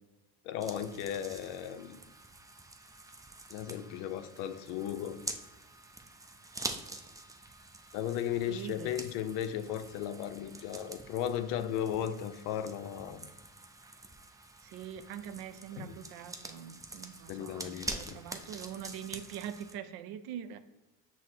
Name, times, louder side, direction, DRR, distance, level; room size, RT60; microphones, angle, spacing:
voice 1, 0.4-2.0 3.5-5.2 7.9-13.3 15.8-15.9 17.3-18.2, left 10 dB, 80° left, 10 dB, 0.5 m, -36 dB
sound 1, 0.6-19.7, right 2 dB, 10° right, 0.4 m, -46 dB
voice 2, 8.5-8.9 14.6-20.6, right 9 dB, 65° right, 12 dB, 0.5 m, -43 dB
5.8 x 2.1 x 4.4 m, 1.1 s
supercardioid pair, 90°, 40 cm